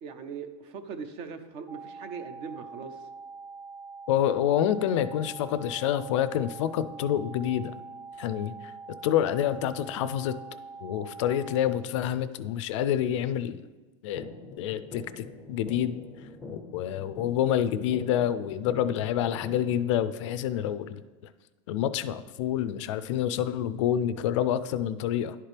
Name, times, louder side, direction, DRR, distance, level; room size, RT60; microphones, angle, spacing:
voice 1, 0.0-3.0, right 5 dB, 40° right, 10 dB, 0.5 m, -40 dB
sound 1, 1.7-11.7, right 4 dB, 20° right, 1.3 m, -44 dB
voice 2, 4.1-7.7 8.2-8.5 9.0-10.4 10.8-13.6 14.0-14.3 14.6-16.0 16.5-21.0 21.7-25.4, left 10 dB, 70° left, 13 dB, 0.4 m, -27 dB
sound 2, 14.2-20.2, left 3 dB, 5° left, 0.5 m, -44 dB
11.0 x 4.4 x 3.3 m, 1.2 s
supercardioid pair, 160°, 16 cm